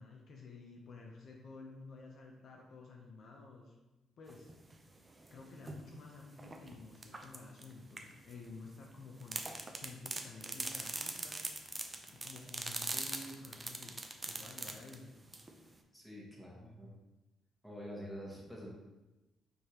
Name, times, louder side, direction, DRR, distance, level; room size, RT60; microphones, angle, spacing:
voice 1, 0.0-3.7 4.2-4.5 5.3-11.5 12.1-14.0 14.2-15.1, left 3 dB, 60° left, 0 dB, 0.6 m, -52 dB
sound 1, 4.3-5.8 6.3-8.4 9.2-15.8, right 2 dB, 25° right, 0.5 m, -42 dB
voice 2, 15.9-16.9 17.6-18.7, equal, ahead, -4 dB, 1.3 m, -47 dB
4.6 x 3.2 x 2.8 m, 1.1 s
cardioid pair, 90°, 0 cm